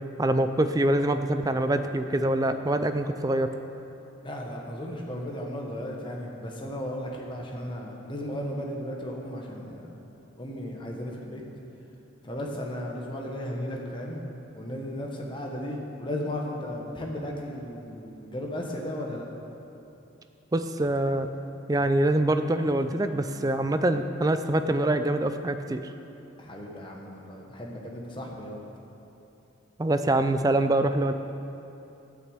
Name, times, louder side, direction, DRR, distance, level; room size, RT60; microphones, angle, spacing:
voice 1, 0.2-3.5 20.5-21.3 21.7-25.8 29.8-31.1, right 1 dB, 20° right, 9 dB, 0.4 m, -25 dB
voice 2, 4.2-9.8 10.4-11.4 12.2-14.2 14.5-19.3 26.4-28.6, left 1 dB, 25° left, -1 dB, 1.2 m, -35 dB
10.5 x 6.2 x 8.1 m, 2.8 s
head